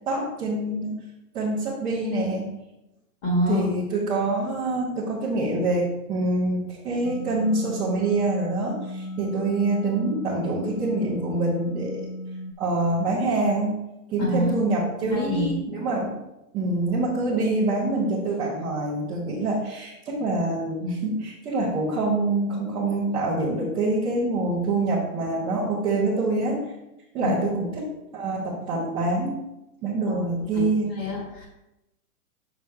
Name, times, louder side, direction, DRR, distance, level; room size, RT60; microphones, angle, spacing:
voice 1, 0.1-0.9 1.3-2.5 3.5-12.1 12.6-13.8 14.1-16.2 16.5-26.6 27.1-29.4 29.8-30.9, right 2 dB, 10° right, -10 dB, 0.5 m, -25 dB
voice 2, 3.2-3.7 14.2-14.6 15.0-15.6 27.2-27.6 30.1-30.2 30.5-30.6 30.9-31.5, left 1 dB, 40° left, -1 dB, 1.4 m, -26 dB
sound 1, 7.0-12.5, left 1 dB, 80° left, 1.0 m, -35 dB
5.9 x 5.1 x 3.2 m, 0.92 s
hypercardioid pair, 145°, 47 cm